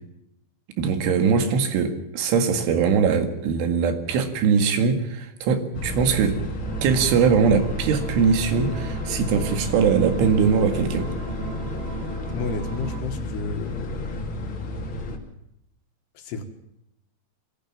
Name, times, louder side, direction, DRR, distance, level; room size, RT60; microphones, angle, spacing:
voice 1, 0.8-6.4 6.8-11.1, right 6 dB, 85° right, 7 dB, 4.5 m, -21 dB
sound 1, 5.7-15.2, left 1 dB, 35° left, 2.3 m, -31 dB
sound 2, 6.6-13.0, right 5 dB, 55° right, 4.7 m, -38 dB
voice 2, 12.3-14.1 16.1-16.4, left 5 dB, 65° left, 6 dB, 3.4 m, -32 dB
23.5 x 16.0 x 7.4 m, 0.82 s
omnidirectional pair, 5.5 m